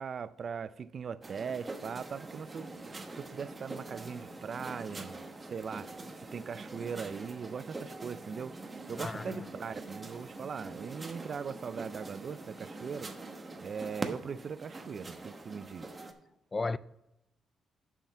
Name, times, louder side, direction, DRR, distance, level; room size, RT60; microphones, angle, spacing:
voice 1, 0.0-5.9 6.2-8.6 8.9-13.1 13.6-15.9, right 6 dB, 50° right, 0.4 m, -40 dB
sound 1, 1.2-16.1, right 2 dB, 25° right, 1.0 m, -44 dB
voice 2, 9.0-9.5 16.5-16.8, left 3 dB, 25° left, 0.3 m, -34 dB
7.3 x 5.7 x 6.8 m
cardioid pair, 105°, 0 cm